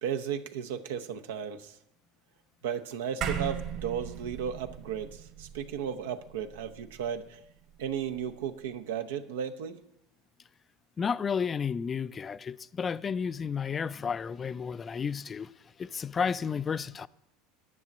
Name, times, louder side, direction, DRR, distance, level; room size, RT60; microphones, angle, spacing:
voice 1, 0.0-1.7 2.6-7.4 7.8-9.8, right 8 dB, 85° right, 0.7 m, -35 dB
sound 1, 3.2-7.8, right 8 dB, 60° right, 2.0 m, -38 dB
voice 2, 11.0-15.5 15.8-17.1, left 6 dB, 30° left, 0.3 m, -32 dB
11.0 x 6.1 x 7.8 m
supercardioid pair, 100°, 0 cm